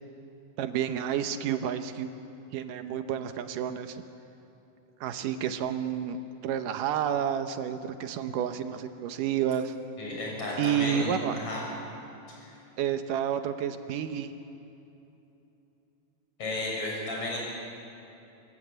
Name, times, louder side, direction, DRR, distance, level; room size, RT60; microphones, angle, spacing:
voice 1, 0.6-2.1 2.5-4.0 5.0-6.2 6.4-9.8 10.6-11.4 12.8-14.3, right 9 dB, 80° right, 9 dB, 2.5 m, -30 dB
voice 2, 10.0-11.6 12.4-12.5 16.4-17.4, left 2 dB, 45° left, -4 dB, 7.8 m, -33 dB
28.0 x 16.0 x 8.7 m, 2.9 s
omnidirectional pair, 3.8 m